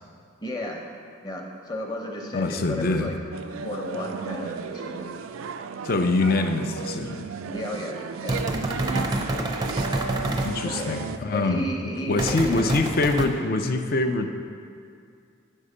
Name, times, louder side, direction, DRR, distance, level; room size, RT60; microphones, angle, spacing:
voice 1, 0.4-0.8 1.2-3.1 3.6-5.1 7.5-8.4 10.6-11.0 11.3-12.7, equal, 20° left, 1 dB, 0.8 m, -33 dB
voice 2, 2.3-3.1 5.8-7.3 10.4-11.7 12.1-14.3, left 2 dB, 45° left, 7 dB, 0.4 m, -24 dB
sound 1, 3.3-11.2, right 5 dB, 80° right, 0.3 m, -34 dB
sound 2, 8.3-10.5 12.2-13.3, right 1 dB, 20° right, 0.5 m, -27 dB
8.5 x 5.4 x 4.9 m, 2.4 s
head